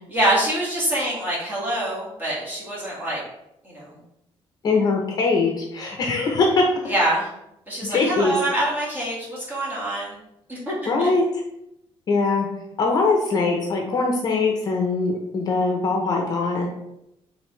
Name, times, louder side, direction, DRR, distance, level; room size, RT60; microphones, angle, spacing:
voice 1, 0.1-3.2 3.6-3.9 6.8-7.3 7.7-10.2 10.5-11.1, right 1 dB, 15° right, -7 dB, 1.7 m, -25 dB
voice 2, 4.6-6.9 7.8-8.3 10.9-11.2 12.1-12.5 12.8-16.7, left 3 dB, 40° left, 1 dB, 0.7 m, -22 dB
5.1 x 3.2 x 3.1 m, 0.83 s
cardioid pair, 170°, 11 cm